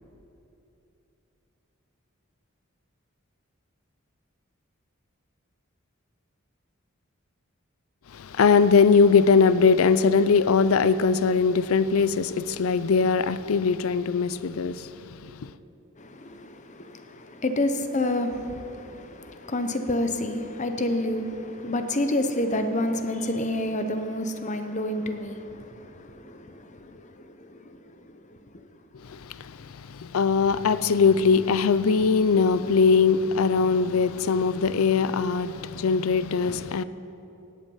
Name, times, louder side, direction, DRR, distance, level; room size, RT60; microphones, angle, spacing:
voice 1, 8.1-15.5 29.0-36.8, left 5 dB, 80° left, 0.5 m, -21 dB
voice 2, 16.0-27.7, left 1 dB, 35° left, 0.8 m, -29 dB
17.5 x 8.4 x 5.5 m
head